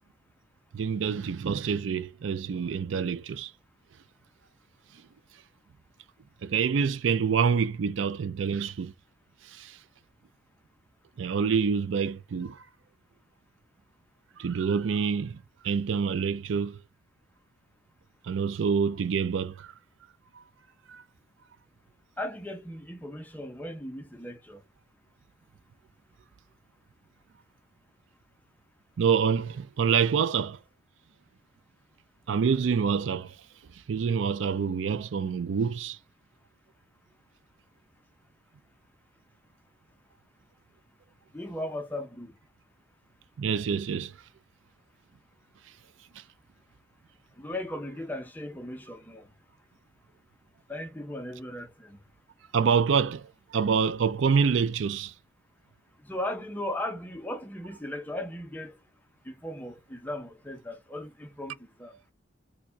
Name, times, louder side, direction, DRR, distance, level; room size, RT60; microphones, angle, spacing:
voice 1, 0.7-3.5 6.4-8.9 9.5-9.8 11.2-12.6 14.4-15.4 15.6-16.8 18.2-19.7 20.9-21.0 29.0-30.6 32.3-33.3 33.9-36.0 43.4-44.1 52.5-53.2 53.5-55.1, right 6 dB, 85° right, 0.4 m, -26 dB
voice 2, 22.2-24.6 32.5-32.7 41.3-42.3 47.4-49.3 50.7-52.0 56.0-58.7 59.3-61.9, left 1 dB, 10° left, 0.6 m, -37 dB
4.5 x 2.2 x 2.7 m
head